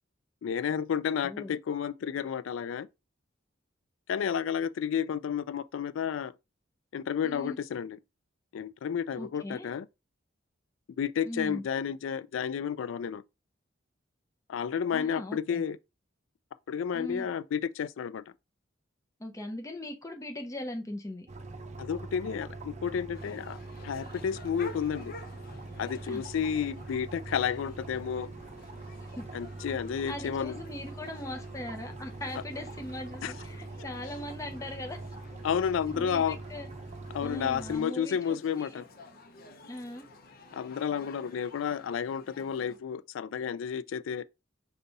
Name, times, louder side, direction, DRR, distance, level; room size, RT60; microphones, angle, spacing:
voice 1, 0.4-2.9 4.1-6.3 6.9-8.0 8.5-9.9 11.0-13.2 14.5-15.8 16.7-18.2 21.8-23.6 23.8-25.1 25.8-28.3 29.3-30.6 33.2-33.3 33.8-33.9 35.4-36.4 37.1-38.8 40.5-44.2, left 7 dB, 85° left, 0.3 m, -31 dB
voice 2, 1.2-1.5 7.2-7.6 9.2-9.7 11.2-11.6 14.9-15.6 16.9-17.3 19.2-21.3 26.1-26.2 29.2-29.3 30.1-35.0 35.9-36.7 37.2-38.8 39.7-40.1, left 1 dB, 15° left, 0.7 m, -40 dB
sound 1, 21.3-37.8, right 2 dB, 35° right, 0.7 m, -43 dB
sound 2, 23.1-42.8, left 2 dB, 50° left, 0.7 m, -52 dB
5.3 x 2.3 x 4.0 m
head